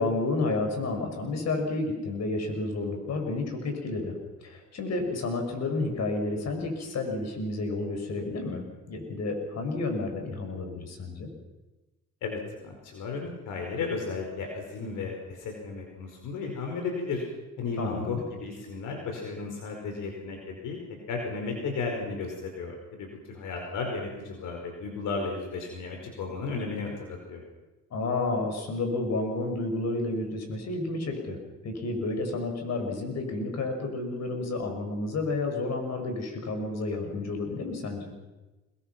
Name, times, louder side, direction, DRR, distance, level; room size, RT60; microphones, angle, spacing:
voice 1, 0.0-4.1 4.4-11.3 17.8-18.2 27.9-31.4 31.6-38.1, left 2 dB, 60° left, 4 dB, 6.5 m, -31 dB
voice 2, 12.2-17.2 17.6-20.8 21.1-27.4, left 4 dB, 85° left, 2 dB, 5.0 m, -34 dB
26.0 x 22.5 x 6.1 m, 1.1 s
cardioid pair, 90°, 30 cm